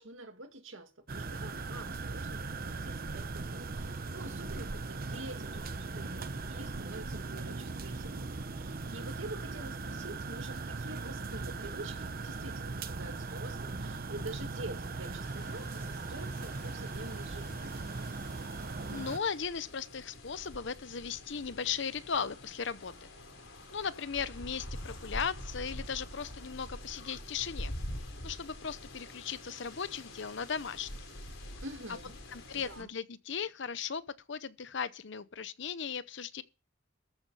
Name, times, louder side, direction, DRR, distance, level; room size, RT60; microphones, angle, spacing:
voice 1, 0.0-17.7 31.6-32.2 32.5-32.9, right 2 dB, 75° right, 2.0 m, -47 dB
sound 1, 1.1-19.2, right 3 dB, 45° right, 0.9 m, -39 dB
sound 2, 15.2-32.8, left 1 dB, 85° left, 4.0 m, -46 dB
voice 2, 18.9-23.1 23.7-27.7 28.2-30.9 32.3-34.0 34.3-36.4, left 6 dB, 60° left, 0.8 m, -37 dB
14.0 x 7.3 x 5.5 m
head